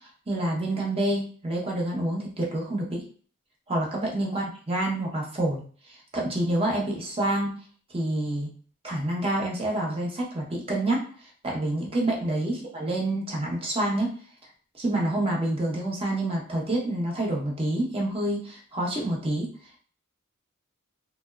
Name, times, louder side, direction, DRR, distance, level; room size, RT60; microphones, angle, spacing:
voice 1, 0.3-3.0 3.7-5.6 6.1-7.6 7.9-8.5 8.8-11.0 11.4-14.1 14.8-19.5, right 1 dB, 25° right, -2 dB, 0.7 m, -27 dB
2.8 x 2.0 x 2.2 m, 0.43 s
head